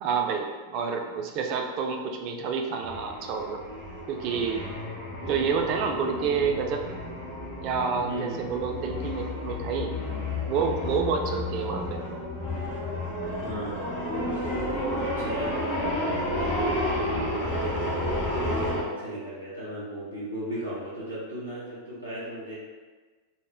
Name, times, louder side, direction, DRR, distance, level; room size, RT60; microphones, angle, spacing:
voice 1, 0.0-3.6 4.1-4.6 5.2-6.8 7.6-9.9 10.5-12.0, right 5 dB, 40° right, 3 dB, 0.3 m, -28 dB
sound 1, 2.8-18.8, left 1 dB, 40° left, 1.0 m, -31 dB
voice 2, 8.1-8.4 13.4-22.6, right 1 dB, 85° left, -8 dB, 0.6 m, -36 dB
2.1 x 2.0 x 3.4 m, 1.4 s
figure-of-eight pair, 90°, 0 cm